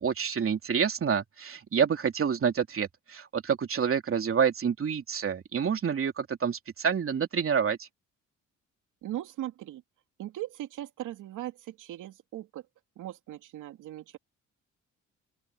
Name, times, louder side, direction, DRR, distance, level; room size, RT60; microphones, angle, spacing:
voice 1, 0.0-7.9, right 7 dB, 45° right, 3.1 m, -28 dB
voice 2, 9.0-9.8 10.2-12.7 13.0-14.2, right 13 dB, 85° right, 2.8 m, -39 dB
open air
cardioid pair, 90°, 30 cm